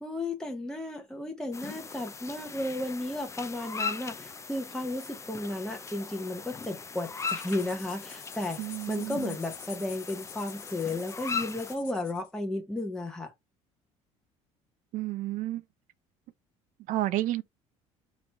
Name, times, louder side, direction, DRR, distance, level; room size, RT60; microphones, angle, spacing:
voice 1, 0.0-8.6 8.9-13.3, left 2 dB, 5° left, 0.9 m, -34 dB
sound 1, 1.5-11.8, left 5 dB, 20° left, 0.4 m, -39 dB
sound 2, 7.0-12.3, left 10 dB, 70° left, 0.9 m, -49 dB
voice 2, 8.6-9.4 14.9-15.6 16.9-17.4, right 15 dB, 65° right, 0.5 m, -31 dB
3.8 x 3.1 x 3.3 m
supercardioid pair, 75°, 14 cm